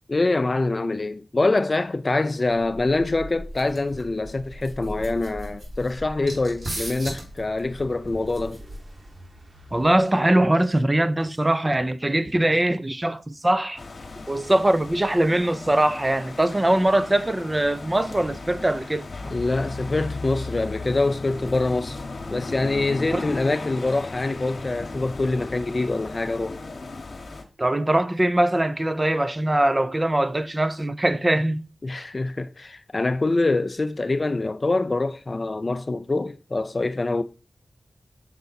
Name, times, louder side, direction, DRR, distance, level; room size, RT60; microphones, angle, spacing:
voice 1, 0.1-8.6 19.3-22.0 22.3-26.6 31.8-37.2, left 2 dB, 45° left, 0.5 m, -25 dB
sound 1, 2.6-9.1, right 1 dB, 65° right, 2.9 m, -38 dB
sound 2, 3.2-10.0, right 1 dB, 50° right, 1.8 m, -50 dB
voice 2, 9.7-13.8 14.3-19.1 23.1-23.3 27.6-31.7, right 1 dB, 25° right, 0.5 m, -22 dB
sound 3, 13.8-27.4, left 3 dB, 70° left, 1.0 m, -36 dB
6.8 x 4.0 x 4.0 m
cardioid pair, 55°, 0 cm